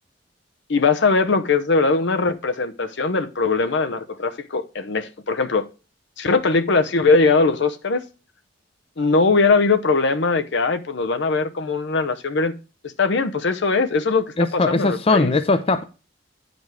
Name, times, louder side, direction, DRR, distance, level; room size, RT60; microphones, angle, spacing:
voice 1, 0.7-5.7 6.2-8.0 9.0-12.5 13.0-15.3, left 4 dB, 65° left, 0.7 m, -20 dB
voice 2, 14.4-15.8, left 3 dB, 30° left, 0.5 m, -19 dB
9.2 x 5.2 x 4.8 m
head